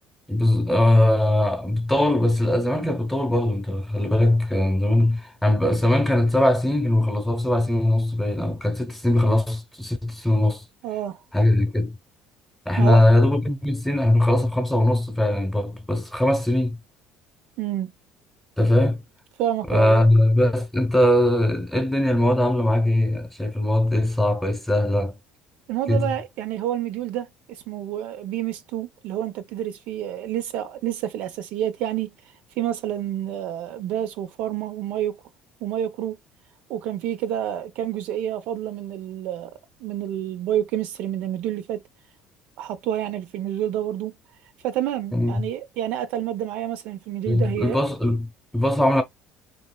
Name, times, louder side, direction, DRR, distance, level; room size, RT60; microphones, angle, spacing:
voice 1, 0.3-10.6 11.3-12.0 12.7-16.8 18.6-19.0 19.7-25.2 25.9-26.1 45.1-45.5 47.3-49.0, left 1 dB, 5° left, 0.8 m, -20 dB
voice 2, 10.8-11.2 12.8-13.0 17.6-17.9 19.4-20.1 25.7-27.3 27.7-32.1 32.6-35.2 35.6-36.2 36.7-39.5 39.8-41.8 42.6-44.1 44.6-47.8, right 11 dB, 70° right, 0.5 m, -28 dB
3.0 x 2.8 x 2.2 m
cardioid pair, 130°, 3 cm